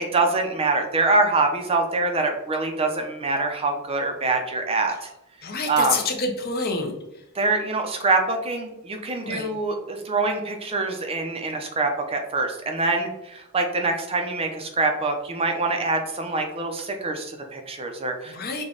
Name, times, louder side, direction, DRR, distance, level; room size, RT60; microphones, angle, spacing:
voice 1, 0.0-5.1 5.7-6.0 7.4-18.3, right 3 dB, 25° right, 4 dB, 0.5 m, -25 dB
voice 2, 5.4-6.9 9.2-9.5 18.3-18.6, left 3 dB, 45° left, 4 dB, 0.6 m, -27 dB
5.2 x 2.2 x 3.7 m, 0.89 s
head